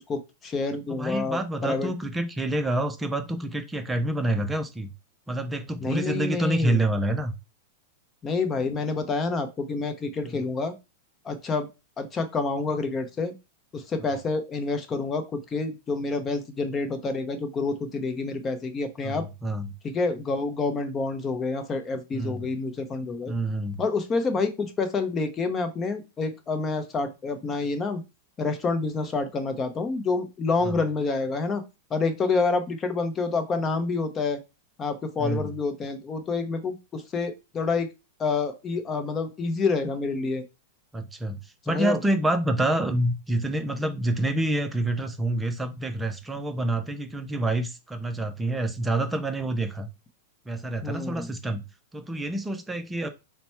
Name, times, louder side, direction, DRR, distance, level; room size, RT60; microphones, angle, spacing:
voice 1, 0.1-1.9 5.8-6.8 8.2-10.7 11.2-11.7 12.0-13.3 13.7-19.2 19.8-23.3 23.8-28.0 28.4-31.6 31.9-34.4 34.8-37.9 38.2-40.4 41.7-42.0 50.8-51.3, left 3 dB, 25° left, 8 dB, 0.8 m, -28 dB
voice 2, 0.9-4.9 5.3-7.3 10.2-10.4 19.0-19.7 22.1-22.4 23.3-23.8 30.6-30.8 35.2-35.5 40.9-49.9 50.5-51.6 51.9-53.1, right 1 dB, 10° right, 7 dB, 0.6 m, -27 dB
4.1 x 2.2 x 4.3 m, 0.26 s
hypercardioid pair, 110°, 0 cm